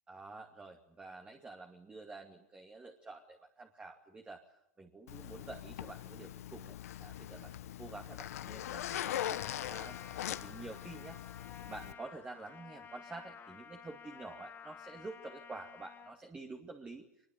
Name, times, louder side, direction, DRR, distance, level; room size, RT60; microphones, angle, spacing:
voice 1, 0.1-4.4 4.8-17.1, right 3 dB, 15° right, 3 dB, 2.4 m, -49 dB
Zipper (clothing), 5.1-11.9, left 12 dB, 70° left, 1.4 m, -41 dB
Trumpet, 8.9-16.2, left 7 dB, 25° left, 2.5 m, -52 dB
24.0 x 21.5 x 9.0 m, 0.75 s
hypercardioid pair, 120°, 8 cm